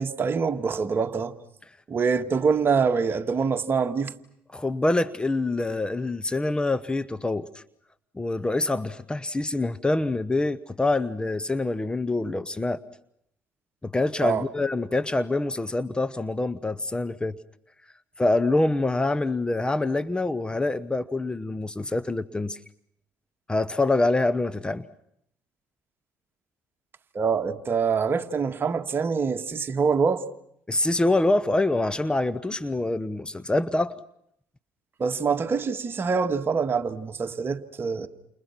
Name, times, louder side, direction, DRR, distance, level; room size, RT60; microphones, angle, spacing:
voice 1, 0.0-1.3 1.9-4.1 14.2-14.4 27.1-30.2 35.0-38.1, right 5 dB, 35° right, 1.8 m, -25 dB
voice 2, 4.5-7.6 8.2-12.8 13.8-17.3 18.2-22.6 23.5-24.8 30.7-33.9, left 2 dB, 15° left, 1.0 m, -25 dB
29.5 x 28.5 x 6.0 m
hypercardioid pair, 65°, 6 cm